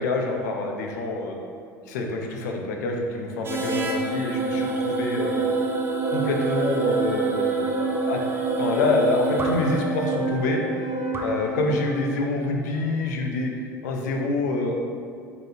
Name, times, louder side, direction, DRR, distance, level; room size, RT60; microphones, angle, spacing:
voice 1, 0.0-1.4 1.9-5.3 6.1-7.6 8.1-8.2 8.6-10.6 11.2-13.5 13.8-14.7, left 3 dB, 70° left, 2 dB, 0.5 m, -26 dB
sound 1, 3.4-11.9, right 3 dB, 25° right, 0.5 m, -26 dB
Wind instrument woodwind instrument, 5.4-9.0 9.3-13.2, equal, 50° right, 1.2 m, -40 dB
3.8 x 3.7 x 2.7 m, 2.2 s
figure-of-eight pair, 70°, 10 cm